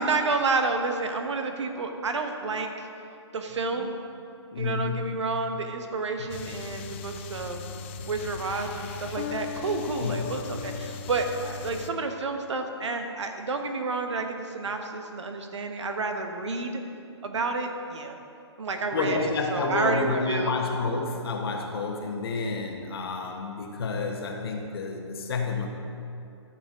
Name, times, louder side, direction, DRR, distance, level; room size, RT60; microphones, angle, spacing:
voice 1, 0.0-2.9 3.3-3.9 4.6-7.6 8.1-16.8 17.2-18.2 18.6-20.5, right 3 dB, 75° right, 5 dB, 1.2 m, -30 dB
voice 2, 4.5-5.1 6.3-6.4 10.0-10.2 18.9-25.7, left 4 dB, 55° left, 2 dB, 1.1 m, -29 dB
sound 1, 6.3-11.9, left 5 dB, 25° left, 0.4 m, -37 dB
13.0 x 7.1 x 3.7 m, 2.6 s
hypercardioid pair, 150°, 15 cm